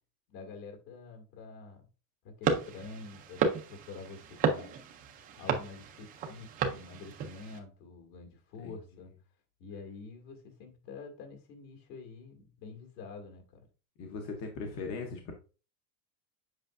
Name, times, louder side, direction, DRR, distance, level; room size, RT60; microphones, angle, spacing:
voice 1, 0.3-1.8 2.2-4.7 5.4-9.1 9.6-13.6, left 4 dB, 60° left, 2.3 m, -47 dB
sound 1, 2.4-7.6, right 5 dB, 20° right, 0.4 m, -33 dB
voice 2, 14.0-15.3, left 4 dB, 30° left, 0.8 m, -39 dB
8.0 x 5.1 x 2.4 m
cardioid pair, 170°, 49 cm